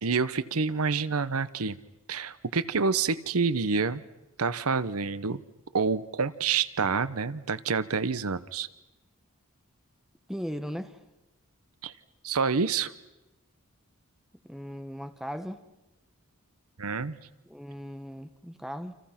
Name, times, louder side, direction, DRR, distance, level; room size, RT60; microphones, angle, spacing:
voice 1, 0.0-1.8 2.1-4.0 4.4-5.4 5.7-8.7 11.8-11.9 12.2-12.9 16.8-17.2, right 5 dB, 80° right, 16 dB, 0.9 m, -28 dB
voice 2, 10.3-11.0 14.4-15.6 17.5-18.9, equal, ahead, 9 dB, 1.1 m, -38 dB
29.0 x 27.5 x 5.9 m, 0.99 s
head